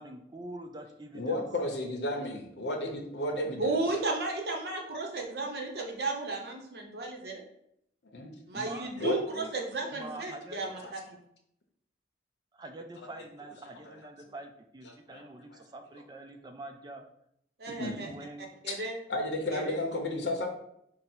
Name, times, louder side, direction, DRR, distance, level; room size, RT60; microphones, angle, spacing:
voice 1, 0.0-1.4 8.5-8.9 9.3-9.5 9.8-10.9 12.5-17.0 17.7-18.5, right 2 dB, 25° right, 5 dB, 0.4 m, -45 dB
voice 2, 1.1-3.7 8.1-8.3 9.0-9.2 10.8-10.9 15.1-15.2 17.7-18.1 18.7-18.8 19.1-20.5, left 1 dB, 80° left, 3 dB, 0.8 m, -32 dB
voice 3, 3.6-7.4 8.5-11.0 17.6-18.1 18.6-19.0 19.5-19.8, right 2 dB, 60° right, 1 dB, 0.9 m, -34 dB
5.1 x 2.1 x 4.3 m, 0.75 s
head